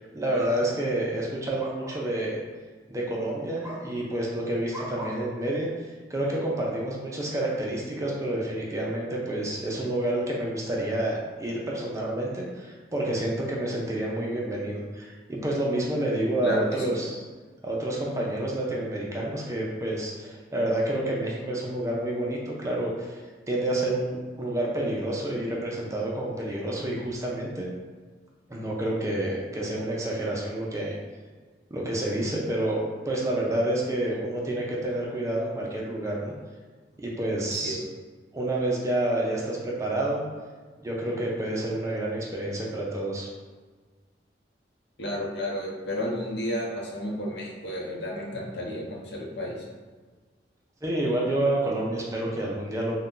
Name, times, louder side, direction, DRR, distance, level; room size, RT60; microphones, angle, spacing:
voice 1, 0.1-2.4 2.9-5.7 6.1-17.2 17.6-23.2 23.5-27.7 28.5-31.0 31.7-36.3 37.0-37.8 38.3-40.3 40.8-43.3 50.8-53.0, right 1 dB, 15° right, -3 dB, 0.4 m, -29 dB
voice 2, 16.4-16.9 37.5-37.8 45.0-49.6, equal, 75° left, -4 dB, 0.7 m, -32 dB
2.5 x 2.2 x 3.6 m, 1.4 s
head